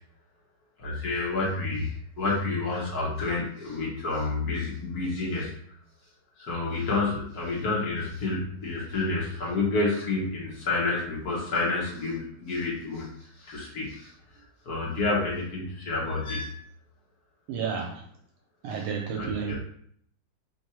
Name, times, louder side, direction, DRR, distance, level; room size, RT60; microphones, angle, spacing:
voice 1, 0.8-5.5 6.4-14.1 14.6-16.6 18.7-18.8 19.2-19.6, left 3 dB, 50° left, -5 dB, 1.4 m, -29 dB
voice 2, 17.5-18.0 18.6-19.6, right 6 dB, 80° right, 2 dB, 1.4 m, -31 dB
3.6 x 2.6 x 4.2 m, 0.63 s
omnidirectional pair, 2.4 m